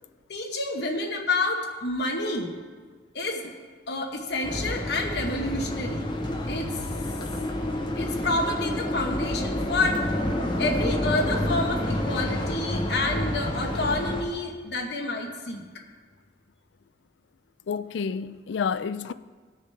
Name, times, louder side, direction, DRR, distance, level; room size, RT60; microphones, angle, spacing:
voice 1, 0.3-2.6 3.1-3.5 3.9-6.0 6.5-6.8 8.0-10.0 10.6-15.6, left 2 dB, 60° left, 1.0 m, -28 dB
sound 1, 4.4-14.2, left 1 dB, 25° left, 0.9 m, -29 dB
voice 2, 17.7-19.1, left 6 dB, 80° left, 0.4 m, -29 dB
18.5 x 6.6 x 3.3 m
head